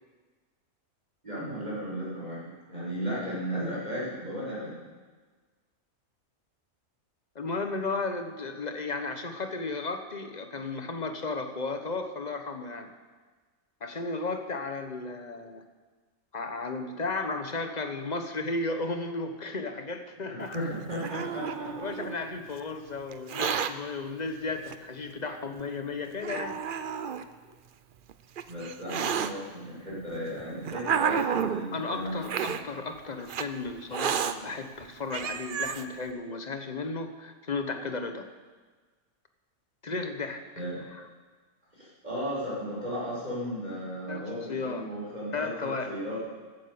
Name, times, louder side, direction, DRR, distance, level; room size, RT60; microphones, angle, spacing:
voice 1, 1.2-4.8 20.3-21.7 28.5-32.6 40.6-40.7 41.7-46.2, equal, 30° right, -7 dB, 6.0 m, -35 dB
voice 2, 7.3-12.9 13.8-15.6 16.3-20.8 21.8-26.6 31.7-38.3 39.8-40.4 40.9-41.1 44.1-44.8 45.3-46.0, left 3 dB, 35° left, 7 dB, 1.1 m, -34 dB
Hiss, 20.5-22.2 23.1-23.7 24.7-24.8 25.6-25.7 26.2-27.2 28.1-29.3 30.1-31.7 32.2-32.6 33.3-33.5 33.9-34.3 34.8-34.9 35.1-35.8, right 7 dB, 55° right, 0.6 m, -30 dB
14.5 x 9.7 x 7.0 m, 1.4 s
omnidirectional pair, 1.5 m